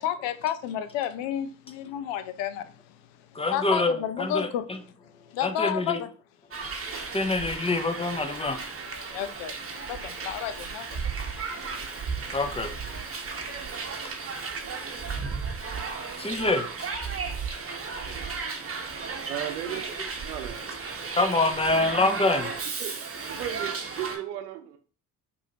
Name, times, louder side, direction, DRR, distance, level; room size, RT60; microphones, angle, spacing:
voice 1, 0.0-3.0 3.5-4.7 5.3-6.1 9.1-11.0, left 10 dB, 70° left, 0.6 m, -31 dB
voice 2, 3.3-4.5 5.4-6.0 7.1-8.6 12.3-12.7 16.2-17.0 21.1-22.5, left 2 dB, 15° left, 0.6 m, -26 dB
Hiss, 6.5-24.2, right 5 dB, 30° right, 1.0 m, -34 dB
voice 3, 19.3-19.8 20.2-20.6 21.7-21.9 22.8-22.9 23.2-24.8, right 12 dB, 85° right, 0.7 m, -35 dB
4.9 x 2.7 x 2.8 m
hypercardioid pair, 55°, 45 cm